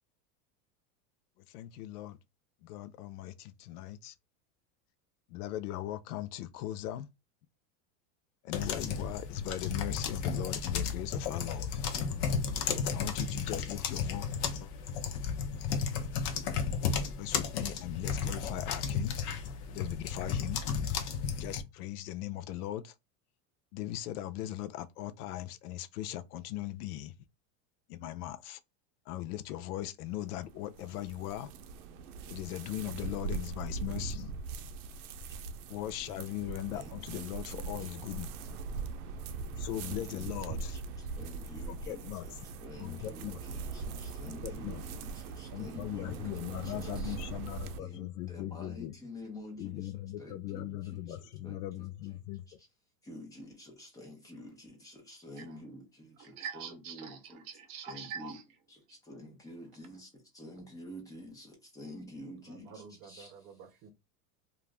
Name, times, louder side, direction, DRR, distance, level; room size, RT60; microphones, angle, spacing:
voice 1, 1.4-2.2 2.6-4.2 5.3-7.1 8.4-11.8 12.9-14.3 14.6-14.7 17.2-19.2 19.7-20.6 21.4-22.9 23.7-27.1 27.9-28.6 29.1-31.5 32.3-34.3 35.7-38.3 39.6-40.8 41.7-42.4 42.8-43.4 44.3-44.8 45.5-48.9 49.6-52.6, left 13 dB, 85° left, 0.6 m, -39 dB
sound 1, 8.5-21.6, left 6 dB, 35° left, 0.5 m, -33 dB
sound 2, 30.1-47.8, right 4 dB, 80° right, 0.6 m, -41 dB
voice 2, 32.7-33.3 36.7-37.9 39.7-47.2 47.8-49.9 50.2-51.2 51.4-51.9 53.0-57.5 57.9-58.4 58.7-63.3, left 1 dB, 10° left, 0.7 m, -49 dB
voice 3, 56.2-58.4 62.5-63.9, right 7 dB, 45° right, 0.9 m, -45 dB
2.4 x 2.4 x 3.2 m
supercardioid pair, 150°, 44 cm